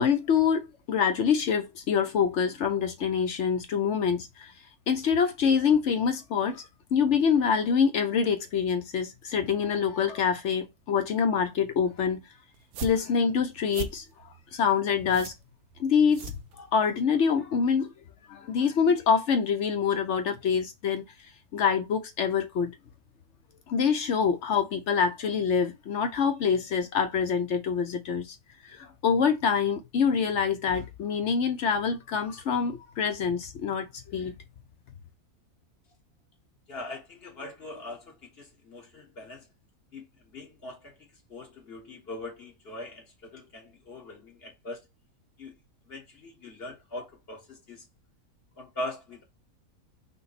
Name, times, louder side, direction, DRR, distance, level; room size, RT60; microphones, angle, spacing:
voice 1, 0.0-4.5 4.9-12.2 12.8-14.0 14.5-15.3 15.8-17.9 18.3-21.0 21.5-22.7 23.7-28.4 28.6-34.3, left 6 dB, 60° left, 0.8 m, -26 dB
sound 1, 12.5-17.0, right 8 dB, 80° right, 1.1 m, -41 dB
voice 2, 36.7-39.5 39.9-44.9 45.4-45.5 45.9-47.9 48.6-49.2, left 1 dB, 45° left, 1.5 m, -41 dB
5.6 x 2.1 x 4.0 m
omnidirectional pair, 1.5 m